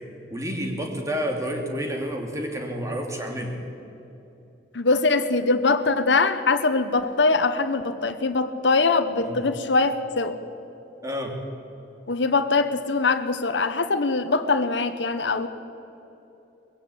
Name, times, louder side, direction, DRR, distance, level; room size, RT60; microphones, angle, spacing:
voice 1, 0.3-3.6 9.2-9.4 11.0-11.4, equal, 20° right, 2 dB, 2.8 m, -29 dB
voice 2, 4.7-10.4 12.1-15.5, left 3 dB, 85° left, 9 dB, 1.1 m, -22 dB
21.5 x 16.0 x 8.6 m, 2.9 s
head